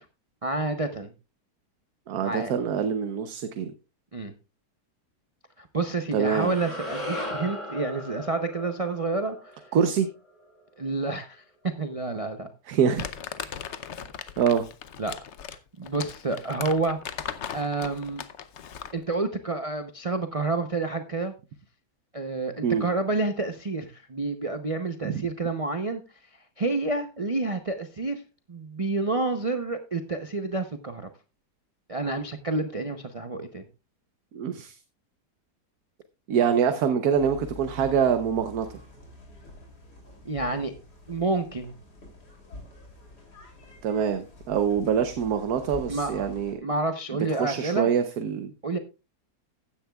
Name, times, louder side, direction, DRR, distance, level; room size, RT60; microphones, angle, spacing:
voice 1, 0.4-1.1 2.2-2.5 4.1-4.3 5.6-9.6 10.8-12.5 15.0-15.2 15.8-17.0 17.5-18.2 18.9-21.3 22.1-26.0 26.6-28.2 28.5-31.1 31.9-33.7 40.2-40.7 41.1-41.7 45.9-46.3 46.6-47.9 48.6-48.8, right 3 dB, 35° right, 7 dB, 0.6 m, -29 dB
voice 2, 2.1-3.7 6.1-6.5 9.7-10.1 12.7-13.0 14.4-14.6 22.6-22.9 25.0-25.2 34.3-34.8 36.3-38.7 43.8-46.6 47.4-48.5, right 7 dB, 70° right, 9 dB, 1.3 m, -25 dB
sound 1, 6.4-10.6, left 1 dB, 25° left, 6.8 m, -37 dB
Crumpling crinkling, 13.0-19.0, left 8 dB, 55° left, 0.9 m, -38 dB
sound 2, 37.1-46.5, left 1 dB, 80° left, 3.6 m, -46 dB
15.0 x 10.0 x 2.3 m, 0.28 s
omnidirectional pair, 1.7 m